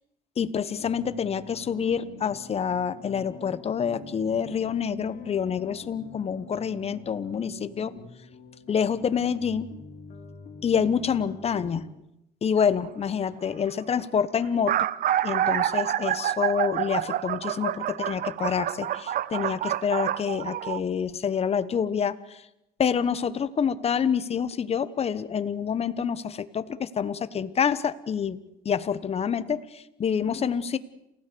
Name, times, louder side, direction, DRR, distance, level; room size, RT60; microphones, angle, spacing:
voice 1, 0.4-7.9 8.7-9.7 10.6-11.9 12.4-14.7 15.2-22.4 22.8-30.8, left 7 dB, 35° left, 14 dB, 1.1 m, -27 dB
sound 1, 0.8-11.9, left 4 dB, 60° left, 4.2 m, -46 dB
sound 2, 12.6-12.9 13.7-13.8 14.0-14.1 14.4-20.8, right 11 dB, 55° right, 0.8 m, -28 dB
28.0 x 16.5 x 6.9 m, 0.85 s
cardioid pair, 110°, 17 cm